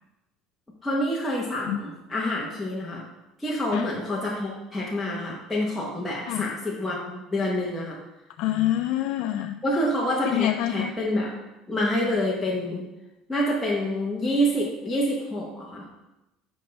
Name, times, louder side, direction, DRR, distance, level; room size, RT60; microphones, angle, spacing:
voice 1, 0.8-3.0 3.4-8.0 9.6-11.3 11.7-12.9 13.3-15.9, equal, 5° left, -6 dB, 1.0 m, -27 dB
voice 2, 6.3-6.6 8.4-9.6 10.2-10.9, left 13 dB, 65° left, 6 dB, 0.3 m, -27 dB
7.6 x 5.3 x 3.3 m, 0.95 s
cardioid pair, 165°, 0 cm